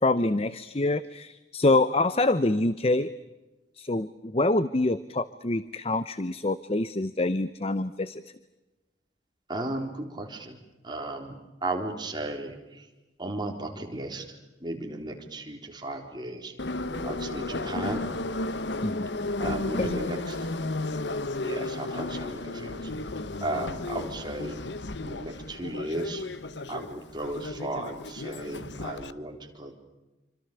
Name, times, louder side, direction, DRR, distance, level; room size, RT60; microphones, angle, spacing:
voice 1, 0.0-3.1 3.7-8.2 18.8-19.1 19.7-20.0, left 2 dB, 35° left, 14 dB, 0.8 m, -26 dB
voice 2, 9.5-10.6 10.8-12.9 13.2-14.2 14.6-16.5 17.0-18.0 19.4-20.4 21.4-22.9 23.4-24.6 25.0-26.2 26.7-29.7, right 2 dB, 25° right, 2 dB, 4.1 m, -35 dB
Subway metro underground, 16.6-29.1, left 2 dB, 75° left, 1.1 m, -33 dB
sound 1, 16.9-20.7, left 2 dB, 55° left, 2.3 m, -44 dB
27.5 x 25.5 x 6.9 m, 1.1 s
head